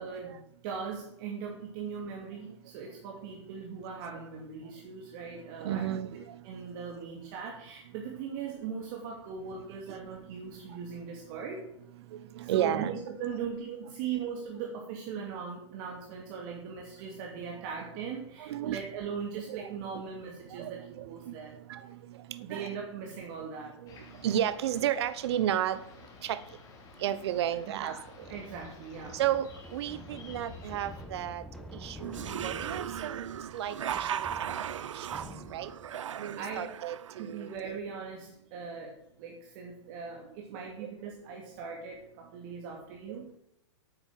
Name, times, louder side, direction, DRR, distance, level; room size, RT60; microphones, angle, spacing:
voice 1, 0.0-5.9 6.4-11.7 12.4-21.5 22.4-23.8 27.7-29.2 36.3-36.8 37.2-43.4, right 6 dB, 45° right, 0 dB, 2.7 m, -39 dB
voice 2, 5.6-6.4 9.9-10.0 12.3-13.0 18.4-18.8 19.5-20.0 20.5-21.3 21.7-22.7 23.8-24.0 24.2-25.8 26.2-26.4 27.0-27.9 29.1-31.4 31.7-32.2 32.4-33.2 33.5-34.2 34.9-35.1 35.5-35.7 36.2-37.8 40.8-40.9 43.1-43.2, right 11 dB, 60° right, 14 dB, 0.9 m, -33 dB
sound 1, 23.9-31.1, left 4 dB, 25° left, 3.1 m, -52 dB
sound 2, 28.2-35.9, left 1 dB, ahead, 1.9 m, -48 dB
sound 3, 32.0-37.6, right 9 dB, 85° right, 0.6 m, -37 dB
9.1 x 8.9 x 7.7 m, 0.77 s
hypercardioid pair, 140°, 16 cm